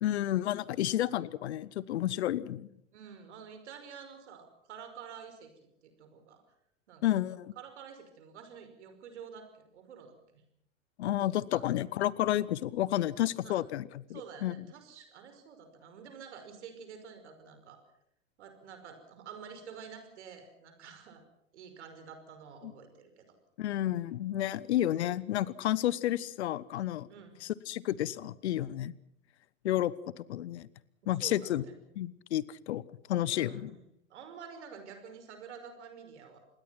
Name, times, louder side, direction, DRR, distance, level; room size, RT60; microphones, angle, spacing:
voice 1, 0.0-2.7 7.0-7.5 11.0-14.6 23.6-27.1 27.4-28.9 29.6-30.7 31.1-31.6 32.0-32.8 33.1-33.7, left 13 dB, 55° left, 21 dB, 1.1 m, -31 dB
voice 2, 2.9-5.5 5.8-6.4 6.9-7.0 7.6-10.4 11.5-11.7 13.4-13.6 14.1-17.8 18.4-21.2 21.5-23.3 27.1-27.4 31.1-31.8 33.3-33.8 34.1-36.4, right 6 dB, 60° right, 8 dB, 5.4 m, -49 dB
27.0 x 21.0 x 5.9 m, 0.74 s
figure-of-eight pair, 95°, 39 cm